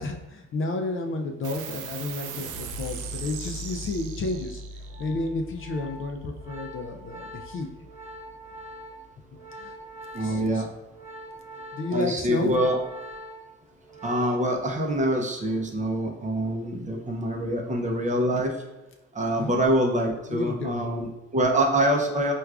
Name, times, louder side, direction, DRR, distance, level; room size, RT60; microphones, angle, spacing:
voice 1, 0.0-4.6 5.0-7.7 9.6-9.7 10.2-10.7 11.7-12.5 19.4-19.5 20.3-21.0, left 2 dB, 45° left, 3 dB, 0.4 m, -31 dB
sound 1, 1.4-8.3, right 4 dB, 80° right, 0.5 m, -39 dB
Organ, 4.6-14.6 14.9-15.2, right 1 dB, 10° right, 1.0 m, -44 dB
voice 2, 10.1-10.7 11.9-12.8 14.0-18.5 19.1-22.3, right 1 dB, 25° right, 1 dB, 0.5 m, -25 dB
4.5 x 2.3 x 2.3 m, 0.99 s
cardioid pair, 90°, 30 cm